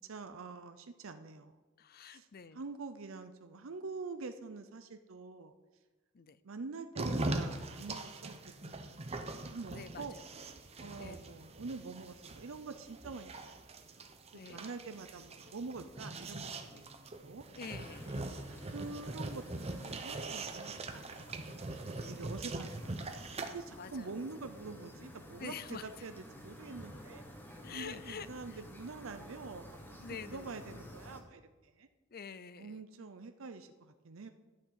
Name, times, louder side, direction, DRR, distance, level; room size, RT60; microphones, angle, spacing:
voice 1, 0.0-1.5 2.1-2.3 2.5-5.5 6.4-8.9 9.5-10.2 10.8-13.5 14.0-16.9 17.2-17.4 18.7-21.5 22.1-27.2 27.7-31.9 32.6-34.3, right 4 dB, 70° right, 9 dB, 0.6 m, -46 dB
voice 2, 1.8-2.6 6.1-6.4 9.7-10.2 11.0-11.3 14.3-14.7 16.7-16.8 17.5-18.2 22.0-22.2 23.8-24.3 25.4-25.9 27.6-28.6 30.0-30.5 32.1-32.8, left 6 dB, 45° left, 15 dB, 0.5 m, -47 dB
sound 1, 6.9-23.5, right 2 dB, 30° right, 0.8 m, -42 dB
sound 2, 17.6-31.2, equal, 10° left, 1.3 m, -52 dB
12.0 x 6.4 x 7.5 m, 1.2 s
head